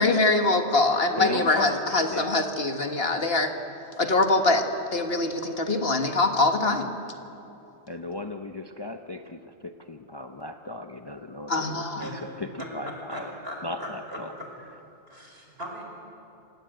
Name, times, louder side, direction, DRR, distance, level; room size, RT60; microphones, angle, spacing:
voice 1, 0.0-3.5 4.0-4.7 4.9-6.9 11.5-12.1, left 2 dB, 60° left, 6 dB, 1.8 m, -23 dB
voice 2, 1.2-2.4 7.9-13.3 13.6-14.3, left 2 dB, 25° left, 6 dB, 0.8 m, -36 dB
voice 3, 13.1-14.5 15.1-15.8, equal, 60° right, 1 dB, 5.2 m, -39 dB
27.0 x 18.0 x 9.2 m, 2.8 s
omnidirectional pair, 1.1 m